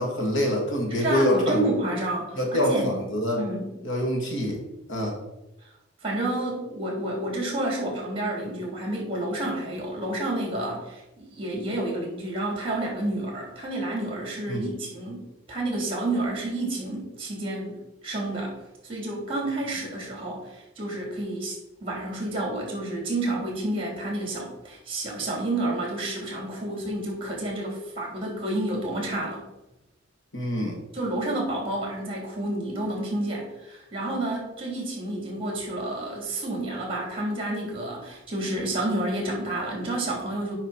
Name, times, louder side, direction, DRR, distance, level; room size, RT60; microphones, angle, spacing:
voice 1, 0.0-1.7 2.4-3.4 3.8-4.6 4.9-5.2 14.5-14.6 30.3-30.8, left 1 dB, 65° left, 1 dB, 2.2 m, -25 dB
voice 2, 1.0-3.0 3.4-3.7 6.0-18.5 18.8-29.4 30.9-40.5, right 1 dB, 25° right, -1 dB, 3.4 m, -30 dB
10.5 x 5.9 x 4.4 m, 0.95 s
head